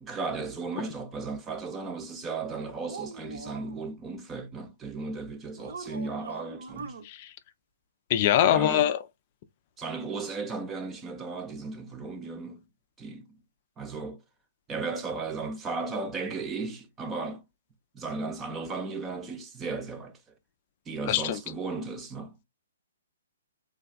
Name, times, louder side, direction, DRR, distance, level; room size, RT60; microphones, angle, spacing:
voice 1, 0.0-7.0 8.5-8.9 9.8-12.7 13.0-13.4 13.8-14.2 14.7-17.4 17.9-20.2 20.9-22.3, right 4 dB, 15° right, 0.6 m, -35 dB
sound 1, 2.5-3.8 5.6-7.0, right 4 dB, 65° right, 0.7 m, -41 dB
voice 2, 8.1-9.0 21.1-21.4, left 11 dB, 40° left, 0.3 m, -23 dB
3.3 x 2.3 x 2.2 m
figure-of-eight pair, 130°, 0 cm